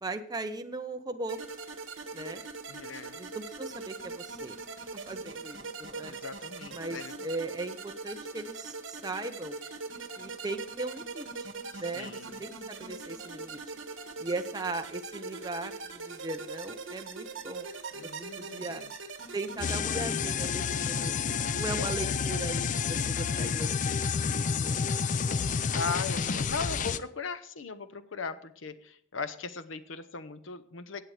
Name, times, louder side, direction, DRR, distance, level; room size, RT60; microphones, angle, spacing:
voice 1, 0.0-1.4 2.1-2.4 3.1-4.6 4.9-6.1 6.7-9.6 10.2-11.5 11.8-13.6 14.2-17.7 18.0-18.1 18.4-18.8 19.3-21.2 21.6-24.0 24.2-24.8 25.1-25.2, right 2 dB, 20° right, 6 dB, 0.6 m, -38 dB
sound 1, 1.3-19.7, right 4 dB, 70° right, 1.4 m, -42 dB
voice 2, 2.7-3.2 6.0-7.2 11.7-12.4 17.9-18.9 21.8-22.2 25.7-31.0, left 4 dB, 75° left, 12 dB, 0.8 m, -38 dB
sound 2, 19.6-27.0, left 6 dB, 40° left, 0.4 m, -29 dB
17.0 x 7.7 x 3.3 m, 0.64 s
head